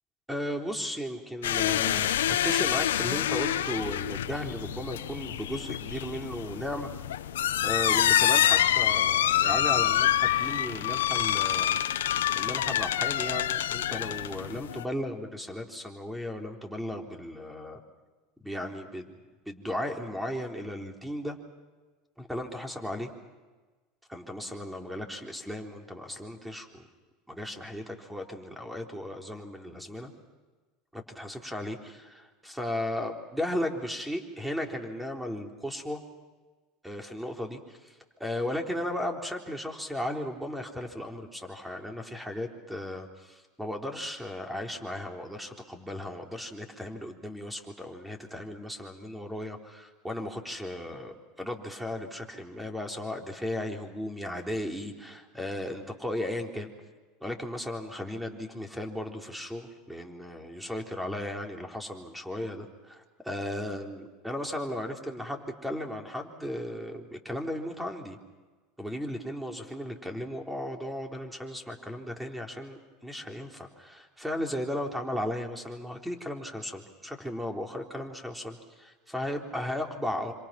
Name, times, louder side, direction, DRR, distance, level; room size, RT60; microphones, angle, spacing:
voice 1, 0.3-6.9 7.6-11.8 12.4-17.8 18.4-19.1 19.5-21.4 22.2-23.1 24.1-26.8 27.3-30.1 30.9-36.0 36.8-37.8 38.2-56.7 57.2-68.2 68.8-80.3, left 1 dB, 5° right, 3 dB, 3.9 m, -36 dB
sound 1, 1.4-14.8, left 11 dB, 85° left, 1.1 m, -27 dB
27.5 x 26.5 x 6.0 m, 1.3 s
hypercardioid pair, 95°, 0 cm